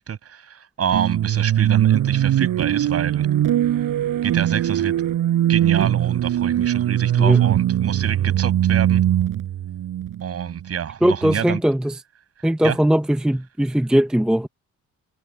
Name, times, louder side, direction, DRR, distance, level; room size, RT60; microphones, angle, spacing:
voice 1, 0.0-3.3 4.2-4.9 5.5-9.0 10.2-11.6 12.6-12.8, right 8 dB, 50° right, 7.9 m, -27 dB
sound 1, 0.9-10.8, right 11 dB, 80° right, 7.9 m, -21 dB
voice 2, 11.0-11.9 12.4-14.5, equal, 5° right, 0.7 m, -19 dB
wide cardioid pair, 175°, 32 cm